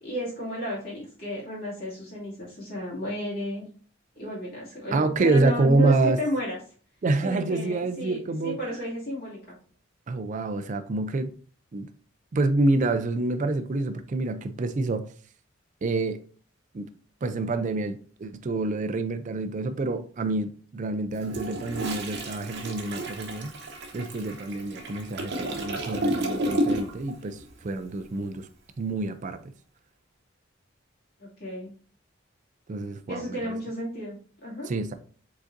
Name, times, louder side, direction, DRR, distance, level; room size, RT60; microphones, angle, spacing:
voice 1, 0.0-3.7 4.1-6.6 7.2-9.5 31.2-31.7 33.1-34.7, equal, 50° left, 2.2 m, -33 dB
voice 2, 4.9-6.2 7.0-8.6 10.1-11.3 11.7-11.9 12.3-15.0 15.8-16.2 16.7-16.9 17.2-23.5 23.9-28.5 28.8-29.5 32.7-33.5 34.7-34.9, right 2 dB, 40° right, 0.4 m, -27 dB
Toilet flush, 21.1-27.1 27.4-27.6, right 1 dB, 55° right, 0.9 m, -31 dB
5.0 x 4.0 x 2.5 m
head